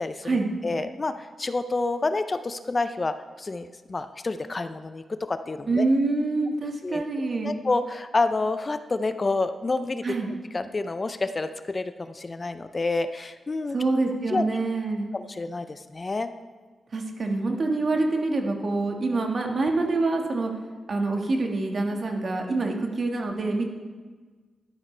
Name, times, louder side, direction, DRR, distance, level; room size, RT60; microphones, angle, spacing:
voice 1, 0.0-5.9 6.8-7.0 7.4-10.0 10.5-13.8 14.3-14.4 15.1-16.3, left 3 dB, 35° left, 10 dB, 0.5 m, -28 dB
voice 2, 5.7-7.5 10.0-10.3 13.7-15.1 16.9-20.5 20.9-23.6, right 3 dB, 50° right, 2 dB, 1.6 m, -26 dB
12.0 x 11.5 x 3.3 m, 1.4 s
cardioid pair, 90°, 0 cm